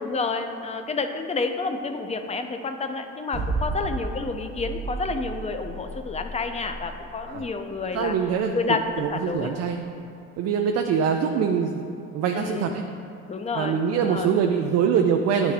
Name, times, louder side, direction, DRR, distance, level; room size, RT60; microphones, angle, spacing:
voice 1, 0.0-8.1 8.5-9.5 12.3-12.8 13.3-14.3, left 4 dB, 20° left, 7 dB, 0.4 m, -29 dB
sound 1, 3.3-9.5, right 2 dB, ahead, 1.5 m, -33 dB
voice 2, 7.9-9.9 10.4-11.8 12.1-12.8 13.5-15.5, right 7 dB, 55° right, 4 dB, 0.4 m, -24 dB
9.4 x 3.4 x 3.2 m, 2.7 s
supercardioid pair, 85°, 32 cm